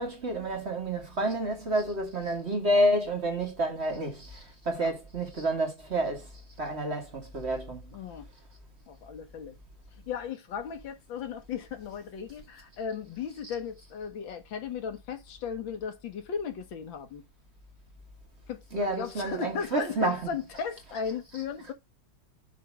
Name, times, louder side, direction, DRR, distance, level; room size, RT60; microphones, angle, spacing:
voice 1, 0.0-6.3 6.6-7.8 18.7-20.2, right 1 dB, 35° right, 1.7 m, -29 dB
voice 2, 7.9-8.3 8.9-9.6 10.1-17.2 18.5-21.7, left 6 dB, 80° left, 1.9 m, -36 dB
7.5 x 3.2 x 5.9 m
omnidirectional pair, 2.1 m